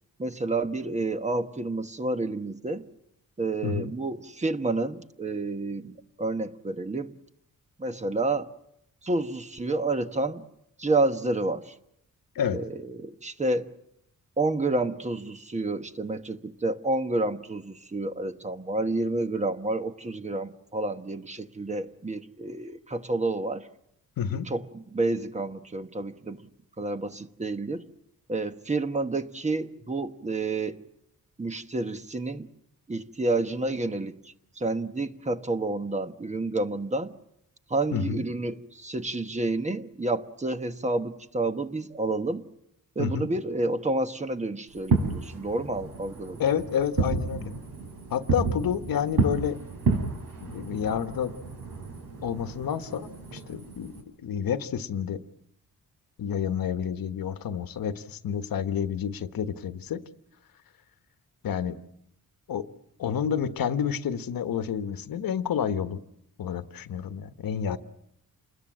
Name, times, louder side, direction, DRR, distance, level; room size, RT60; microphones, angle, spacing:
voice 1, 0.2-2.9 3.4-7.1 7.8-8.5 9.0-10.4 10.8-11.7 12.5-13.7 14.4-23.7 24.3-26.4 26.8-27.9 28.3-30.8 31.4-32.5 32.9-37.1 37.7-42.5 42.9-46.4, right 2 dB, 20° right, 1.1 m, -29 dB
voice 2, 24.2-24.5 37.9-38.2 43.0-43.3 46.4-47.5 48.1-49.6 50.4-51.3 52.2-55.2 56.2-60.0 61.4-61.7 62.5-62.7 63.0-66.0 66.4-67.8, left 8 dB, 90° left, 1.3 m, -29 dB
Fireworks, 44.7-54.0, right 4 dB, 70° right, 5.3 m, -31 dB
28.5 x 21.0 x 7.6 m
wide cardioid pair, 150°, 34 cm